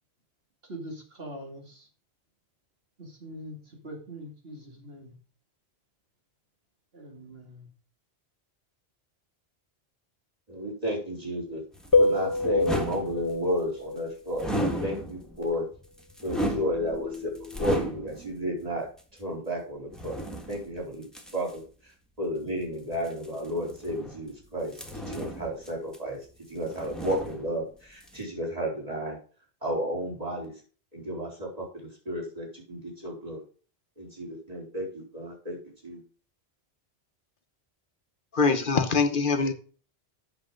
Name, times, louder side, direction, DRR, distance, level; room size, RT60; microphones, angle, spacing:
voice 1, 0.6-1.9 3.0-5.2 6.9-7.7, equal, 65° right, 2.8 m, -43 dB
voice 2, 10.5-11.6 12.0-15.7 16.2-17.3 17.6-18.9 19.2-20.2 20.5-21.1 21.3-21.6 22.2-24.7 25.1-26.2 26.5-29.2 29.6-30.5 30.9-33.4 34.0-35.6 35.8-36.0, equal, 35° right, 4.4 m, -32 dB
sound 1, 11.7-13.7 14.3-15.4 15.8-18.4 19.0-19.1 19.9-21.6 22.9-24.3 24.7-26.3 26.5-27.7 28.0-28.2, right 1 dB, ahead, 1.6 m, -35 dB
sound 2, 11.9-14.1 16.3-17.9, left 3 dB, 20° left, 1.2 m, -27 dB
voice 3, 38.3-39.5, left 4 dB, 55° left, 1.2 m, -23 dB
8.7 x 7.2 x 5.1 m
omnidirectional pair, 1.1 m